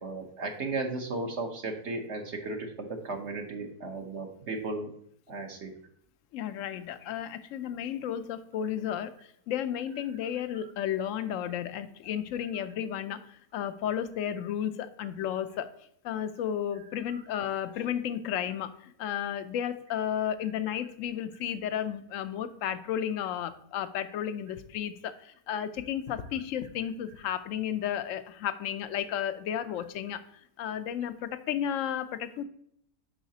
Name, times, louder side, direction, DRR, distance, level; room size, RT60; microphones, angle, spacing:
voice 1, 0.0-4.9 5.3-5.7 10.5-10.7 17.1-17.2 17.5-17.6 25.1-25.2, right 3 dB, 55° right, 3 dB, 1.1 m, -35 dB
voice 2, 6.3-9.1 9.5-15.7 16.0-18.7 19.0-30.2 30.6-32.4, left 9 dB, 65° left, 11 dB, 0.9 m, -33 dB
7.2 x 5.6 x 2.8 m, 0.67 s
omnidirectional pair, 1.6 m